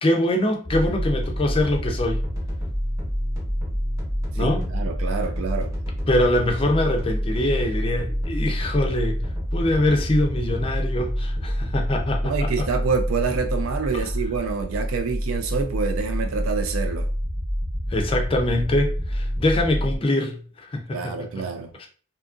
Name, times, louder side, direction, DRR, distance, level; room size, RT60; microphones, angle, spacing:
voice 1, 0.0-2.2 4.3-4.7 6.1-9.2 9.5-12.5 13.9-14.0 17.9-21.3 21.8-21.9, left 1 dB, 25° left, 0.4 m, -23 dB
sound 1, 0.6-20.0, equal, 15° right, 0.8 m, -27 dB
voice 2, 4.3-5.7 12.2-17.1 20.9-21.7, right 5 dB, 75° right, 0.3 m, -27 dB
2.7 x 2.4 x 2.4 m
head